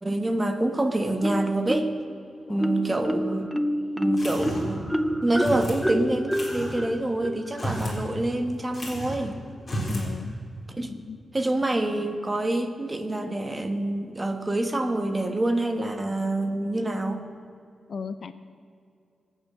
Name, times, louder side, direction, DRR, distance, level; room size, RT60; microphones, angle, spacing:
voice 1, 0.0-1.9 2.5-3.5 4.0-4.9 5.2-9.4 10.7-10.9 11.3-17.2, right 1 dB, 20° right, 6 dB, 1.4 m, -26 dB
Marimba xylophone, 1.2-2.1 2.6-8.1, equal, ahead, 0.6 m, -28 dB
voice 2, 2.5-2.9 9.8-10.3 10.8-11.2 17.9-18.3, left 5 dB, 50° left, 11 dB, 0.7 m, -37 dB
sound 1, 4.2-4.8 5.4-5.8 6.3-6.8 7.5-8.0 8.3-8.4 8.7-9.3 9.6-10.1, equal, 25° left, 4.4 m, -32 dB
24.5 x 8.9 x 6.6 m, 2.5 s
wide cardioid pair, 140°, 0 cm